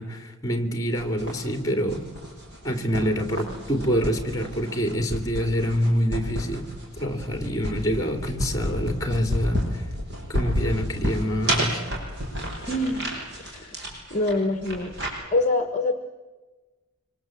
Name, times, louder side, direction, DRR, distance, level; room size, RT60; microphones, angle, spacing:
voice 1, 0.0-2.1 2.6-6.6 7.0-9.8 10.3-11.8, equal, 15° left, 6 dB, 2.9 m, -26 dB
sound 1, 1.0-15.1, equal, 50° right, 7.2 m, -31 dB
voice 2, 12.7-13.0 13.4-13.7 14.1-14.9 15.3-15.9, left 2 dB, 35° left, 7 dB, 1.3 m, -25 dB
25.5 x 25.5 x 7.8 m, 1.3 s
head